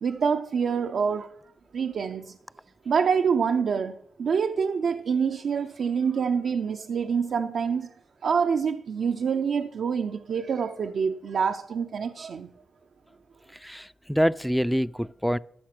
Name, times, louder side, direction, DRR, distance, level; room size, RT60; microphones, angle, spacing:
voice 1, 0.0-1.3 1.7-2.4 2.9-7.9 8.2-12.5, right 6 dB, 70° right, 0.5 m, -26 dB
voice 2, 13.6-15.4, equal, ahead, 0.4 m, -25 dB
13.0 x 5.9 x 6.0 m
supercardioid pair, 55°, 0 cm